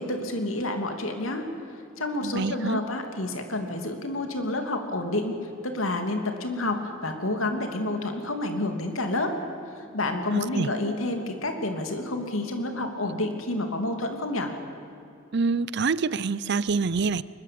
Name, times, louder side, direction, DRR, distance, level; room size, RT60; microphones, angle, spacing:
voice 1, 0.0-1.5 2.0-9.3 9.8-14.5, left 2 dB, 85° left, 5 dB, 2.9 m, -29 dB
voice 2, 2.2-2.8 10.3-10.7 15.3-17.2, right 4 dB, 55° right, 18 dB, 0.6 m, -26 dB
23.0 x 21.5 x 8.6 m, 2.7 s
head